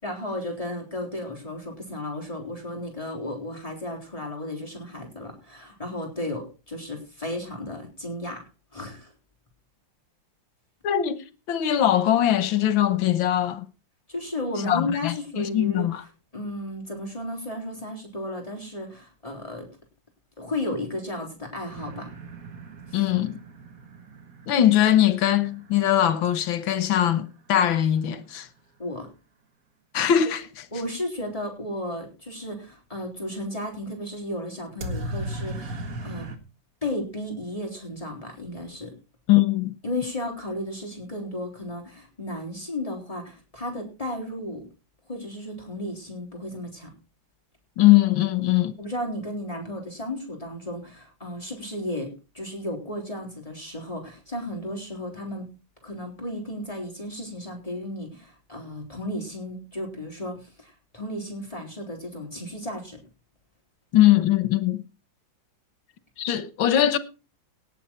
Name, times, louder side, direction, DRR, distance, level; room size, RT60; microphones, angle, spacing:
voice 1, 0.0-9.1 14.1-15.9 16.3-19.7 20.4-22.1 22.9-23.1 28.8-29.1 30.7-35.8 36.0-36.3 36.8-38.9 39.8-44.6 45.1-46.9 48.8-55.5 55.8-63.0, left 1 dB, 15° left, 3.9 m, -34 dB
voice 2, 10.8-13.7 14.7-16.0 22.9-23.4 24.5-28.5 29.9-30.7 39.3-39.7 47.8-48.8 63.9-64.8 66.2-67.0, left 12 dB, 90° left, 1.8 m, -21 dB
sound 1, 21.7-27.4 34.8-36.4, right 1 dB, 50° right, 2.0 m, -38 dB
18.0 x 7.4 x 4.4 m
omnidirectional pair, 2.1 m